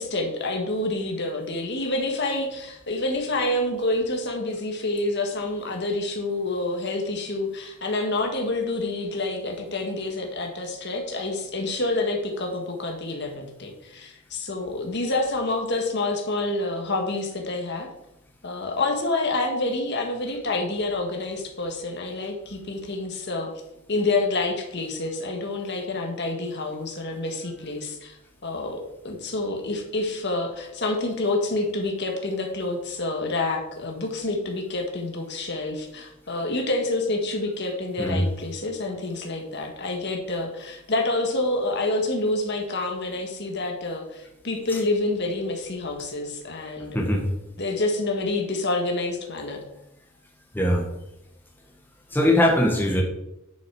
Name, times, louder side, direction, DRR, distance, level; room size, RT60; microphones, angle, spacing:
voice 1, 0.0-17.9 18.4-23.5 23.9-28.2 28.4-47.0 47.6-49.6, left 2 dB, 55° left, 2 dB, 1.7 m, -28 dB
voice 2, 46.9-47.2 50.5-50.8 52.1-53.0, left 1 dB, 10° left, 0 dB, 1.4 m, -21 dB
10.5 x 6.2 x 4.8 m, 0.85 s
head